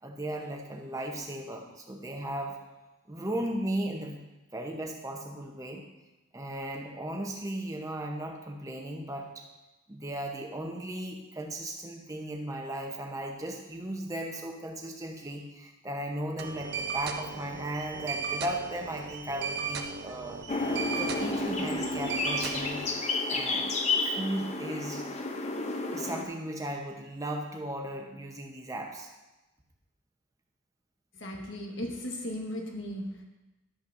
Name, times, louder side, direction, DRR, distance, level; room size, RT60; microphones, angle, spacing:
voice 1, 0.0-2.6 3.1-4.2 4.5-5.8 6.3-9.5 9.9-20.4 21.0-22.9 23.3-23.8 24.0-25.1 25.9-29.1, right 1 dB, 15° right, 1 dB, 0.9 m, -36 dB
sound 1, 16.4-22.9, right 6 dB, 50° right, 0.6 m, -36 dB
sound 2, 20.5-26.2, left 3 dB, 30° left, 0.6 m, -31 dB
voice 2, 31.1-33.2, equal, 60° left, 1 dB, 1.3 m, -36 dB
11.5 x 8.3 x 2.6 m, 1.1 s
head